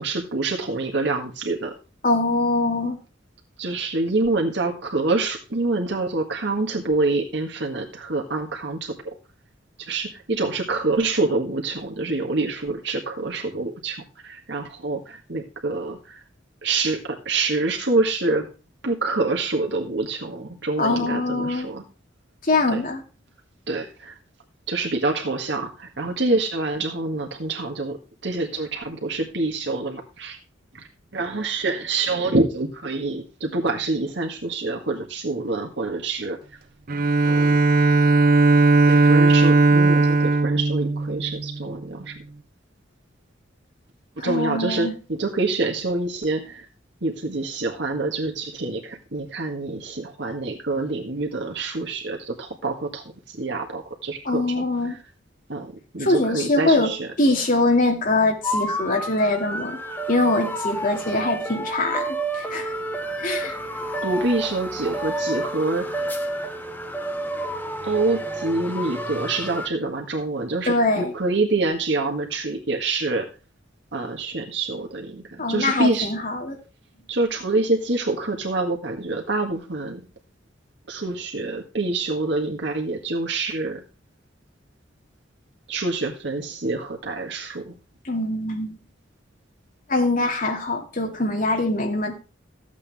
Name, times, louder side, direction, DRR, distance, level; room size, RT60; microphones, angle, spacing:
voice 1, 0.0-1.7 3.6-8.9 9.8-16.2 16.6-18.5 18.8-21.8 22.7-22.8 23.7-24.1 24.7-30.4 30.7-30.9 31.1-36.4 37.2-37.6 38.9-42.1 44.2-46.7 47.0-55.0 55.5-57.1 64.0-66.1 67.8-73.3 73.9-76.1 77.1-80.1 80.9-83.8 85.7-87.8, right 3 dB, 65° right, 1 dB, 1.7 m, -26 dB
voice 2, 2.0-3.0 20.8-21.7 22.4-23.0 44.2-45.0 54.2-55.0 56.0-56.9 57.2-59.8 60.1-62.7 63.2-63.6 70.7-71.1 75.4-76.6 88.0-88.7 89.9-92.1, left 2 dB, 45° left, 2 dB, 2.5 m, -23 dB
Bowed string instrument, 36.9-41.7, right 3 dB, 50° right, 0.6 m, -17 dB
sound 1, 58.4-69.7, right 1 dB, 10° left, 1.2 m, -30 dB
14.0 x 8.4 x 3.5 m, 0.33 s
head